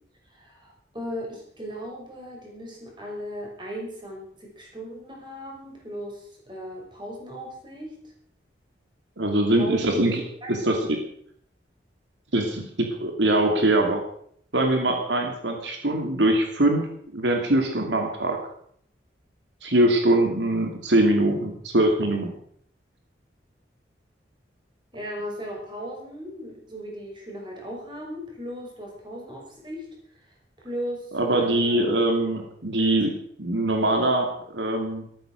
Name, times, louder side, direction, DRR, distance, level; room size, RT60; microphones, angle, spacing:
voice 1, 0.3-8.0 9.5-10.5 10.8-10.9 24.9-29.9 30.6-32.1, equal, 25° right, -1 dB, 6.2 m, -37 dB
voice 2, 9.2-10.2 10.5-11.0 12.3-14.0 14.5-16.9 17.1-18.4 19.6-22.3 31.1-35.1, right 1 dB, 75° right, 3 dB, 2.7 m, -22 dB
14.0 x 14.0 x 6.4 m, 0.64 s
head